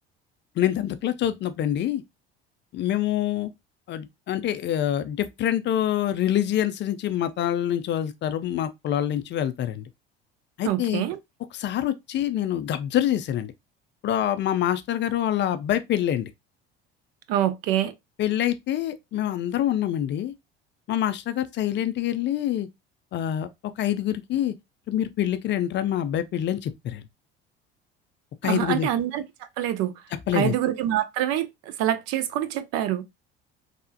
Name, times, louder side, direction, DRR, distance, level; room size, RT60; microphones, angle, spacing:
voice 1, 0.6-2.0 2.7-3.5 3.9-9.9 10.6-11.0 11.5-13.5 14.0-16.3 18.2-20.3 20.9-22.7 23.1-23.5 23.8-24.5 24.9-27.0 28.4-28.9 30.3-30.5, left 11 dB, 40° left, 0.4 m, -26 dB
voice 2, 10.6-11.2 17.3-17.9 28.4-29.2 29.6-29.9 30.3-33.0, right 12 dB, 55° right, 0.5 m, -25 dB
3.3 x 2.0 x 2.6 m
hypercardioid pair, 70°, 31 cm